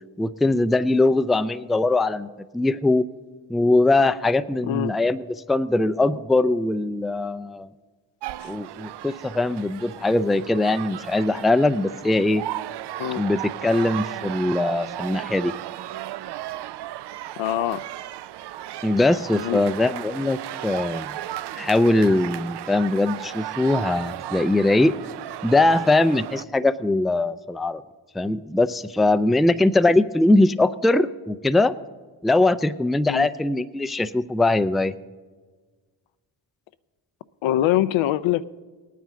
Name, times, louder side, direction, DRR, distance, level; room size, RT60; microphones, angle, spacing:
voice 1, 0.2-2.3 2.5-3.1 3.5-7.7 8.5-12.4 13.2-15.5 18.8-21.1 21.5-24.9 25.4-27.8 28.1-31.7 32.2-35.0, left 2 dB, ahead, 13 dB, 0.4 m, -21 dB
voice 2, 4.6-5.0 8.4-8.5 13.0-13.2 17.4-17.8 19.4-19.6 33.1-33.3 37.4-38.5, left 13 dB, 75° left, 16 dB, 0.6 m, -23 dB
sound 1, 8.2-26.4, right 13 dB, 60° right, 0.5 m, -35 dB
19.0 x 9.3 x 3.7 m, 1.4 s
supercardioid pair, 50°, 47 cm